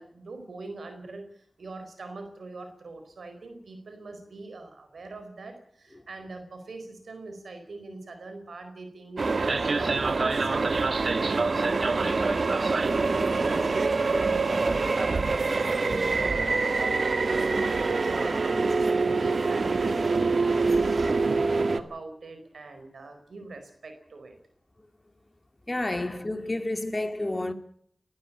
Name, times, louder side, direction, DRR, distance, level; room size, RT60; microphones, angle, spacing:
voice 1, 0.0-10.8 11.3-24.4, right 3 dB, 90° right, 4.7 m, -41 dB
sound 1, 9.2-21.8, right 3 dB, 70° right, 1.6 m, -25 dB
voice 2, 25.7-27.5, left 1 dB, 30° left, 2.6 m, -30 dB
20.5 x 15.0 x 8.7 m
cardioid pair, 45°, 0 cm